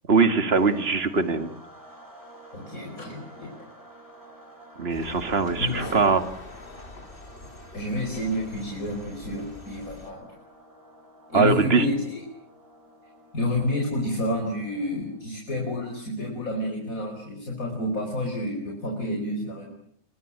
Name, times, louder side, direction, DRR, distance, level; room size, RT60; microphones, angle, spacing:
voice 1, 0.1-1.5 4.8-6.2 11.3-11.9, right 4 dB, 40° right, 11 dB, 2.2 m, -21 dB
sound 1, 0.5-15.3, right 1 dB, 10° right, 6.4 m, -50 dB
voice 2, 2.5-3.5 5.6-6.1 7.7-10.3 11.3-12.2 13.3-19.7, left 1 dB, 65° left, 0 dB, 5.5 m, -29 dB
sound 2, 4.9-10.1, left 2 dB, 35° left, 2.8 m, -43 dB
25.5 x 22.5 x 8.8 m, 0.65 s
omnidirectional pair, 1.6 m